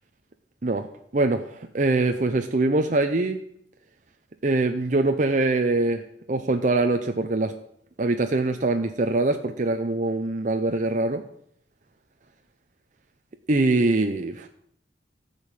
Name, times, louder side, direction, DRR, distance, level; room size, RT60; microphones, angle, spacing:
voice 1, 0.6-3.4 4.4-6.0 6.3-7.5 8.0-11.2 13.5-14.5, right 2 dB, 45° right, 6 dB, 0.7 m, -23 dB
14.0 x 5.3 x 8.2 m, 0.72 s
head